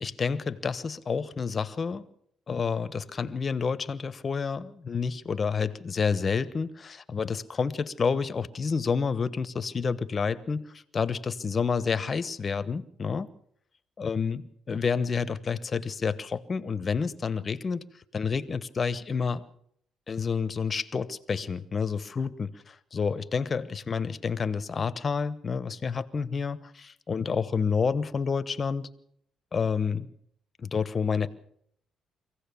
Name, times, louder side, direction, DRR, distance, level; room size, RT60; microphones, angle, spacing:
voice 1, 0.0-2.1 2.5-13.3 14.0-17.8 18.1-19.4 20.1-28.9 29.5-30.1 30.6-31.3, left 5 dB, 40° left, 1.1 m, -29 dB
24.0 x 16.5 x 7.0 m
cardioid pair, 90°, 0 cm